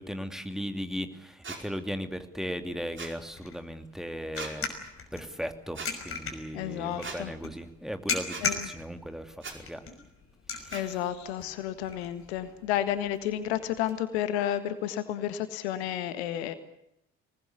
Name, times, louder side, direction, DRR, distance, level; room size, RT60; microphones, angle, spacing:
voice 1, 0.0-4.7 5.1-9.8 10.7-10.9, equal, ahead, 7 dB, 2.7 m, -37 dB
sound 1, 1.4-1.6 3.0-3.2 4.3-4.5 5.7-5.9 7.0-7.2 8.3-8.5 9.4-9.6 10.7-10.8, right 4 dB, 35° right, 5.0 m, -39 dB
sound 2, 2.6-13.9, left 4 dB, 40° left, 5.8 m, -39 dB
voice 2, 6.5-7.3 8.4-8.7 10.7-16.5, left 11 dB, 75° left, 12 dB, 1.7 m, -31 dB
25.0 x 20.0 x 8.3 m, 0.81 s
figure-of-eight pair, 50°, 33 cm